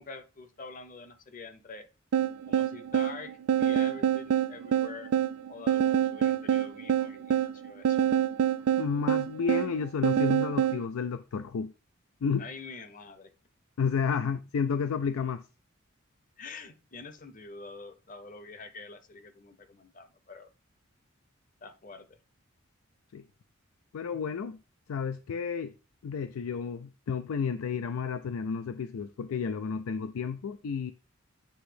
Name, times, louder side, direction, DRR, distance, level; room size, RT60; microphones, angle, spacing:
voice 1, 0.0-1.9 2.5-5.1 5.5-8.0 12.4-13.3 16.4-20.5 21.6-22.2, left 4 dB, 40° left, 0.7 m, -46 dB
sound 1, 2.1-10.8, right 9 dB, 85° right, 0.3 m, -26 dB
voice 2, 8.8-11.7 12.2-12.5 13.8-15.4 23.1-23.2 23.9-24.6 24.9-25.7 26.0-30.9, left 6 dB, 90° left, 0.4 m, -31 dB
8.1 x 2.7 x 5.0 m
head